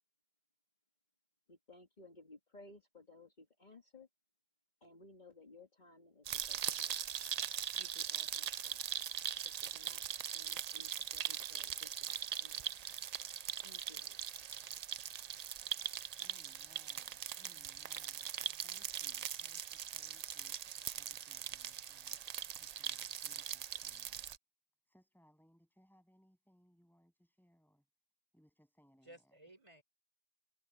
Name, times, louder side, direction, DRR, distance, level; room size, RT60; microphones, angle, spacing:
voice 1, 1.5-4.1 4.8-7.1 7.7-8.9 9.4-12.7 13.6-14.3, left 2 dB, 45° left, 2.0 m, -60 dB
sound 1, 6.3-24.4, right 9 dB, 55° right, 0.4 m, -41 dB
voice 2, 16.2-18.3 18.6-24.3 24.9-27.9 28.3-29.4, equal, ahead, 7.5 m, -70 dB
voice 3, 17.4-17.7 18.4-18.6 29.0-29.8, right 1 dB, 30° right, 5.0 m, -59 dB
omnidirectional pair, 1.1 m